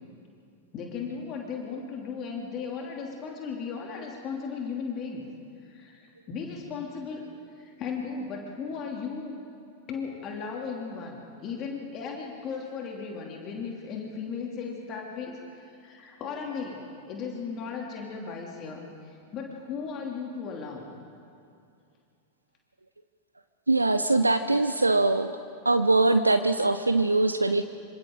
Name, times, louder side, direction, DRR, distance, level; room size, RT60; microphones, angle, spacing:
voice 1, 0.7-5.2 5.6-7.2 7.5-9.3 9.9-20.9 24.4-24.6, left 5 dB, 35° left, 0 dB, 2.9 m, -36 dB
voice 2, 23.7-25.4 25.6-27.6, right 2 dB, 80° right, 9 dB, 0.6 m, -22 dB
26.5 x 26.0 x 3.9 m, 2.4 s
figure-of-eight pair, 90°, 0 cm